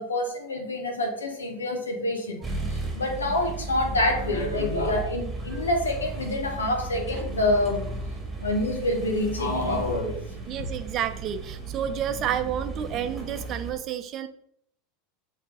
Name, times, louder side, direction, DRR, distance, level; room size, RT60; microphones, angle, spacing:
voice 1, 0.0-2.4 2.9-7.9 8.4-10.2, left 2 dB, 75° left, 2 dB, 1.2 m, -27 dB
sound 1, 2.4-13.7, right 3 dB, 10° right, 1.7 m, -35 dB
voice 2, 10.5-14.3, right 9 dB, 40° right, 9 dB, 0.6 m, -30 dB
7.0 x 3.5 x 3.9 m, 0.67 s
figure-of-eight pair, 80°, 0 cm